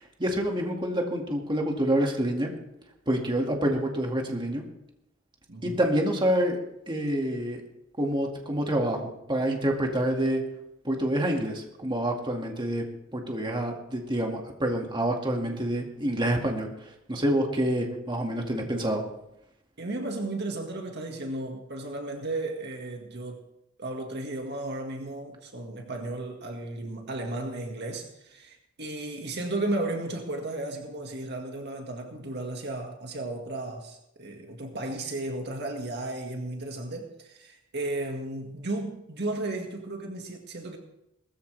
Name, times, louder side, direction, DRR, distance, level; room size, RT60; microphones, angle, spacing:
voice 1, 0.0-2.5 3.1-4.6 5.6-6.6 6.9-7.6 8.0-10.4 10.8-12.8 13.1-19.0, right 1 dB, 25° right, 1 dB, 2.1 m, -27 dB
voice 2, 5.5-5.8 19.8-23.5 23.8-40.8, right 2 dB, 55° right, 3 dB, 1.9 m, -34 dB
19.0 x 14.5 x 3.4 m, 0.84 s
head